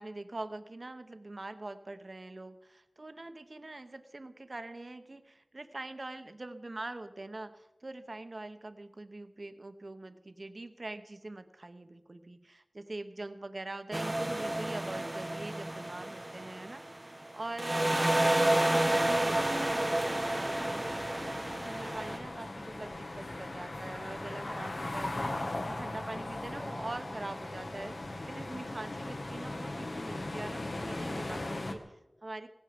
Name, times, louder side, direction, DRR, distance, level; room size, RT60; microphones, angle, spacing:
voice 1, 0.0-17.1 17.3-21.1 21.6-32.5, right 2 dB, 55° right, 10 dB, 1.0 m, -44 dB
sound 1, 13.9-17.3 17.6-22.2, right 1 dB, 30° right, 0.7 m, -30 dB
sound 2, 18.8-31.8, left 2 dB, 70° left, 1.8 m, -39 dB
17.5 x 16.0 x 5.2 m, 0.99 s
wide cardioid pair, 60°, 0 cm